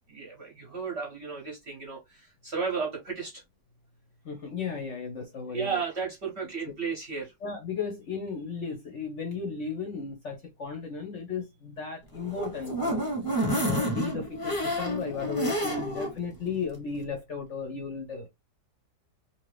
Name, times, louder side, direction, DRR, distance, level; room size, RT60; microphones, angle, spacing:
voice 1, 0.1-3.4 5.5-7.3, right 5 dB, 55° right, 0.8 m, -34 dB
voice 2, 4.2-5.8 7.4-13.1 13.5-18.3, left 5 dB, 60° left, 0.8 m, -35 dB
sound 1, 12.1-16.1 16.5-16.6 16.9-17.0, equal, 20° left, 0.7 m, -29 dB
2.8 x 2.5 x 3.2 m
omnidirectional pair, 1.9 m